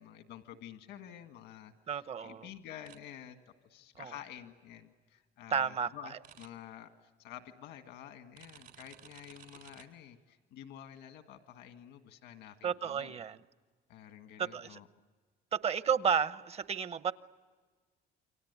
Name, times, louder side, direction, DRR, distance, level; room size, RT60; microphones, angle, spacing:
voice 1, 0.0-1.7 2.2-3.4 3.7-13.1 13.9-14.9, left 10 dB, 85° left, 1.8 m, -50 dB
voice 2, 1.9-2.5 4.0-4.1 5.5-6.2 12.6-13.4 14.4-14.8 15.5-17.1, right 7 dB, 40° right, 0.8 m, -32 dB
sound 1, 2.9-3.0 6.2-6.5 8.4-9.8, right 10 dB, 80° right, 3.5 m, -55 dB
28.5 x 24.5 x 8.2 m
cardioid pair, 110°, 17 cm